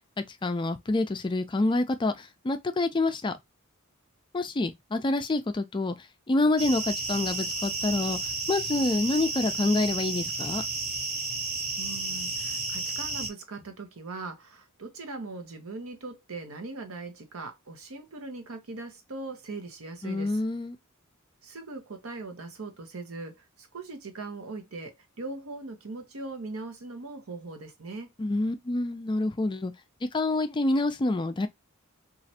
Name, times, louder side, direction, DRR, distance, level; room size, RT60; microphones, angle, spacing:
voice 1, 0.4-3.4 4.3-6.0 6.3-8.2 8.5-10.6 20.0-20.8 28.2-29.7 30.1-31.5, left 2 dB, 20° left, 0.4 m, -27 dB
sound 1, 6.6-13.3, right 3 dB, 30° right, 0.6 m, -32 dB
voice 2, 11.8-20.4 21.4-28.1, right 3 dB, 80° right, 0.9 m, -40 dB
3.1 x 2.4 x 2.7 m
head